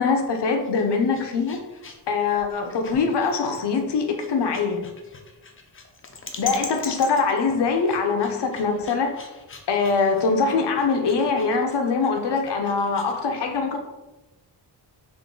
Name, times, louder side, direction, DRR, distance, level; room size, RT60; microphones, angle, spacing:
voice 1, 0.0-1.6 2.1-4.8 6.4-9.1 9.7-13.8, left 4 dB, 65° left, 4 dB, 0.7 m, -23 dB
sound 1, 0.6-13.2, left 4 dB, 30° left, 0.5 m, -42 dB
3.8 x 2.5 x 3.7 m, 1.1 s
wide cardioid pair, 90°, 44 cm